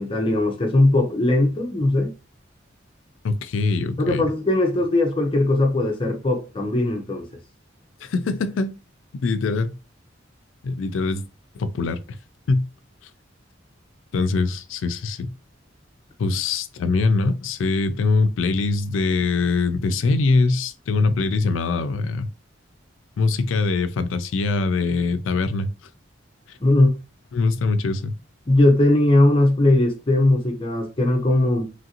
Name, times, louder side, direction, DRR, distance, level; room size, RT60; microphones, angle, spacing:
voice 1, 0.0-2.1 4.0-7.3 26.6-27.0 28.5-31.7, left 1 dB, 25° left, 0.5 m, -19 dB
voice 2, 3.2-4.3 8.0-8.8 9.2-9.7 10.6-11.2 11.5-12.0 12.5-12.6 14.1-15.3 16.2-22.3 23.2-25.7 27.3-28.1, left 3 dB, 85° left, 0.4 m, -22 dB
3.1 x 2.5 x 2.8 m
head